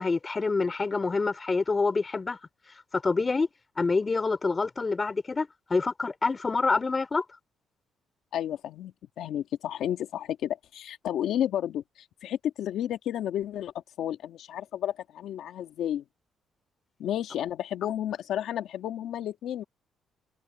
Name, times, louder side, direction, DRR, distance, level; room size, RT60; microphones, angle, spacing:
voice 1, 0.0-2.4 2.9-3.5 3.8-7.2, left 4 dB, 30° left, 4.2 m, -27 dB
voice 2, 8.3-8.9 9.2-16.0 17.0-19.6, left 11 dB, 80° left, 1.8 m, -32 dB
cardioid pair, 90°, 0 cm